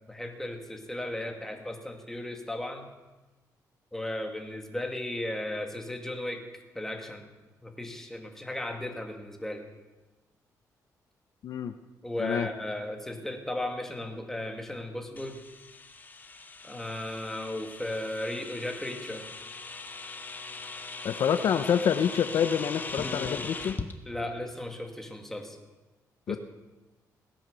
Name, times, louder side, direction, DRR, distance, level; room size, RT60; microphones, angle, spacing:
voice 1, 0.1-2.9 3.9-6.4 6.7-7.3 7.6-9.6 12.0-15.4 16.6-19.3 24.0-25.6 26.3-26.4, left 1 dB, 5° left, 3 dB, 2.3 m, -35 dB
voice 2, 11.4-11.7 12.2-12.5 21.0-23.8 26.3-26.4, left 8 dB, 65° left, 10 dB, 0.7 m, -27 dB
sound 1, 15.2-23.9, left 3 dB, 25° left, 1.2 m, -40 dB
17.5 x 10.0 x 6.8 m, 1.2 s
cardioid pair, 105°, 7 cm